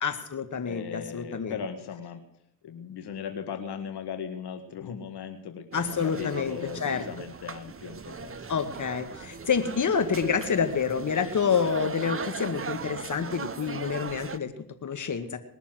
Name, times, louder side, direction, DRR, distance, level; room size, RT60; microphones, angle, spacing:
voice 1, 0.0-1.5 5.7-7.1 8.5-15.4, left 6 dB, 45° left, 8 dB, 2.0 m, -28 dB
voice 2, 0.6-2.2 2.6-8.5, left 7 dB, 75° left, 7 dB, 1.8 m, -38 dB
sound 1, 5.7-14.4, right 5 dB, 30° right, 1.1 m, -39 dB
20.5 x 7.0 x 7.7 m, 0.77 s
supercardioid pair, 60°, 40 cm